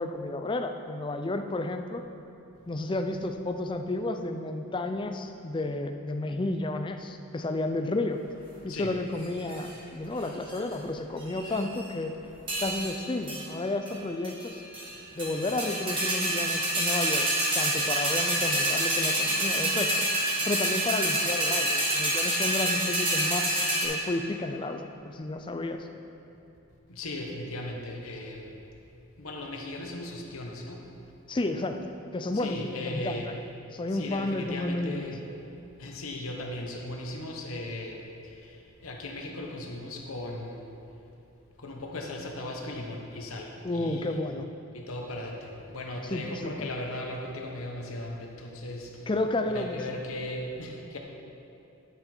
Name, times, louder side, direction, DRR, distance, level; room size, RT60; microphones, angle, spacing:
voice 1, 0.0-2.0 2.7-8.2 8.6-12.1 12.6-14.6 15.2-17.3 17.6-20.1 20.4-25.9 31.3-33.2 33.7-35.1 43.6-44.5 46.1-46.7 49.1-49.8, left 2 dB, 25° left, 6 dB, 0.4 m, -32 dB
voice 2, 8.6-9.0 26.9-28.6 29.2-30.8 32.3-33.4 33.9-35.3 35.8-40.6 41.6-44.2 44.7-49.0 49.4-51.0, left 1 dB, 90° left, 1 dB, 1.1 m, -37 dB
sound 1, 9.2-9.7 10.2-10.7 11.2-11.9 12.5-13.0 13.3-13.4 13.9-14.0 14.2-14.9 15.2-23.8, right 1 dB, 25° right, 1.8 m, -27 dB
10.0 x 6.7 x 4.4 m, 2.9 s
head